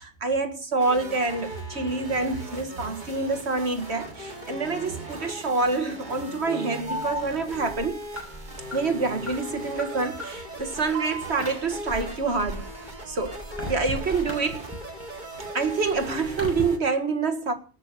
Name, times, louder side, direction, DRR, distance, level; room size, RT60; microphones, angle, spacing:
voice 1, 0.0-8.0 8.7-12.7 13.1-13.4 13.7-14.6 15.5-17.5, right 4 dB, 75° right, 2.1 m, -27 dB
sound 1, 0.8-16.8, right 1 dB, 45° right, 2.9 m, -39 dB
Alarm, 6.8-15.0 15.4-16.6, equal, 10° left, 6.4 m, -37 dB
19.0 x 6.4 x 6.7 m
omnidirectional pair, 1.1 m